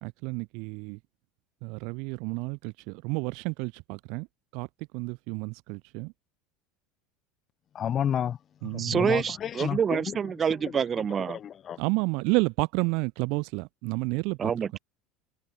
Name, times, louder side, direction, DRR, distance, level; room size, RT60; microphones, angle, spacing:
voice 1, 0.0-1.0 1.6-4.3 4.5-4.7 4.9-6.1 8.6-9.1 11.8-14.8, right 30 dB, 65° right, 1.0 m, -30 dB
voice 2, 7.7-8.4 8.7-10.1 10.6-10.7 11.1-11.8, left 9 dB, 40° left, 1.7 m, -31 dB
voice 3, 8.8-11.4 14.4-14.8, right 7 dB, 35° right, 3.5 m, -27 dB
open air
hypercardioid pair, 85°, 0 cm